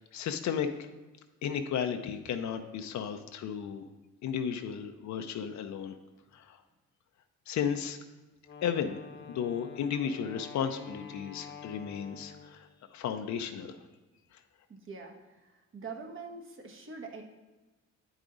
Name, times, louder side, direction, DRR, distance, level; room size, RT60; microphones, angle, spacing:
voice 1, 0.1-0.9 1.4-3.8 4.2-5.9 6.3-6.6 7.5-8.0 8.6-9.0 9.2-12.7 12.9-13.8, left 7 dB, 65° left, 7 dB, 0.6 m, -34 dB
Wind instrument woodwind instrument, 8.4-12.8, left 6 dB, 40° left, 0.9 m, -48 dB
voice 2, 14.7-17.2, right 4 dB, 45° right, 2 dB, 1.3 m, -44 dB
8.8 x 4.9 x 3.9 m, 1.2 s
cardioid pair, 90°, 30 cm